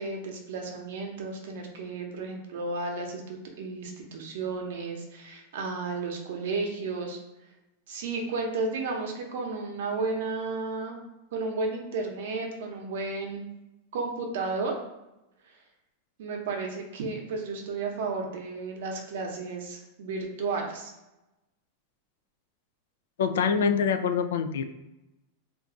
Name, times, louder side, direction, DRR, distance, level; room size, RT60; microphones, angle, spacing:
voice 1, 0.0-7.2 7.9-11.0 11.3-13.4 13.9-14.7 15.5-15.6 16.2-20.9, right 3 dB, 75° right, 2 dB, 0.7 m, -33 dB
voice 2, 23.2-24.6, left 6 dB, 85° left, 9 dB, 0.3 m, -25 dB
2.5 x 2.3 x 3.8 m, 0.95 s
supercardioid pair, 145°, 0 cm